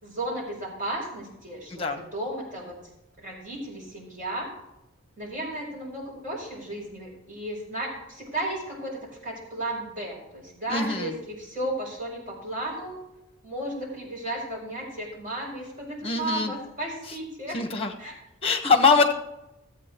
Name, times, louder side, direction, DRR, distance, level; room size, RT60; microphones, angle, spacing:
voice 1, 0.0-2.7 3.2-4.5 5.2-13.0 13.4-17.6 18.0-18.1, right 1 dB, 40° right, -3 dB, 4.8 m, -34 dB
voice 2, 1.7-2.0 10.7-11.1 16.0-16.5 17.1-17.2 17.5-17.9 18.4-19.1, left 4 dB, 25° left, 5 dB, 1.2 m, -23 dB
13.0 x 8.6 x 4.5 m, 0.92 s
head